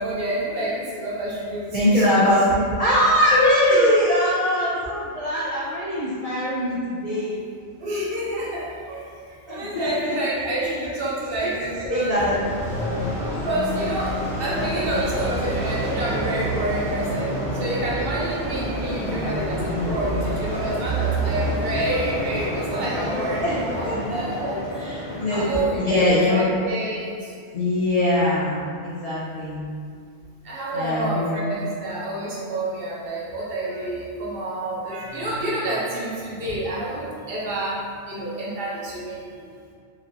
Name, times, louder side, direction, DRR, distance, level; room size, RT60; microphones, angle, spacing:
voice 1, 0.0-2.4 3.7-3.9 7.8-12.2 13.3-24.7 25.3-27.3 30.4-39.2, right 1 dB, 60° right, -6 dB, 0.7 m, -28 dB
voice 2, 1.7-7.4 9.5-9.9 11.4-12.4 19.0-20.0 23.4-23.6 23.8-24.3 24.8-26.5 27.5-29.6 30.7-31.4, left 1 dB, 50° left, -10 dB, 0.5 m, -22 dB
sound 1, 12.1-24.0, right 1 dB, 5° left, 0.8 m, -28 dB
sound 2, 16.1-25.6, left 1 dB, 75° left, 1.1 m, -34 dB
3.0 x 2.6 x 2.5 m, 2.2 s
omnidirectional pair, 1.2 m